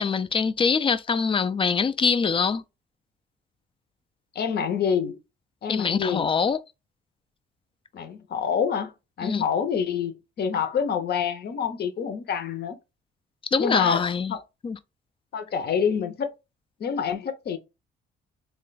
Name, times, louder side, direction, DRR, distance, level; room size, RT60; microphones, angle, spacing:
voice 1, 0.0-2.6 5.7-6.6 9.2-9.4 13.5-14.3 14.6-14.8, left 5 dB, 25° left, 0.4 m, -24 dB
voice 2, 4.3-5.2 5.6-6.3 7.9-8.9 9.2-12.8 13.6-14.4 15.3-16.3 16.8-17.6, left 7 dB, 55° left, 0.7 m, -27 dB
3.2 x 2.2 x 3.9 m
cardioid pair, 90°, 20 cm